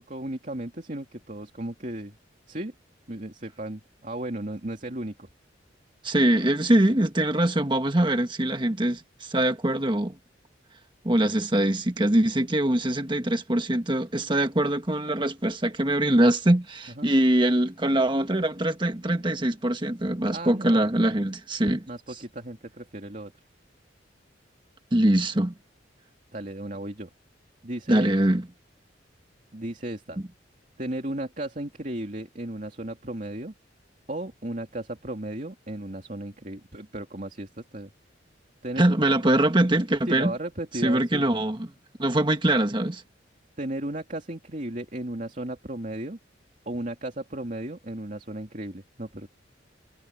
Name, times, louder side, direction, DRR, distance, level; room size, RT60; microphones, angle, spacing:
voice 1, 0.0-2.1 2.5-2.7 3.1-5.3 17.0-17.1 20.3-21.1 21.9-23.3 26.3-27.1 27.6-28.1 29.5-30.2 30.8-33.5 34.1-37.9 38.6-38.8 39.2-39.3 40.1-41.2 43.6-46.2 46.7-49.3, right 1 dB, 45° right, 2.8 m, -35 dB
voice 2, 6.0-10.1 11.0-21.9 24.9-25.5 27.9-28.4 38.8-40.3 40.8-41.7 42.0-43.0, right 1 dB, 25° right, 1.5 m, -23 dB
head